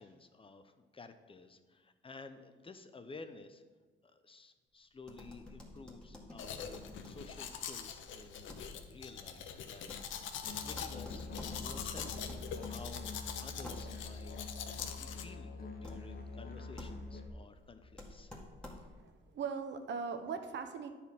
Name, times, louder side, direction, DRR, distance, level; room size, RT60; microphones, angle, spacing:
voice 1, 0.0-3.6 4.0-10.0 10.6-14.4 15.0-18.3, left 3 dB, 25° left, 9 dB, 0.7 m, -53 dB
sound 1, 5.0-19.1, left 1 dB, 5° left, 1.8 m, -52 dB
Domestic sounds home sounds, 6.4-15.2, left 8 dB, 80° left, 0.8 m, -44 dB
Musical instrument, 10.4-17.3, left 3 dB, 50° left, 1.5 m, -45 dB
voice 2, 18.8-20.9, right 6 dB, 65° right, 7 dB, 0.9 m, -40 dB
9.9 x 4.2 x 7.3 m, 1.4 s
cardioid pair, 90°, 20 cm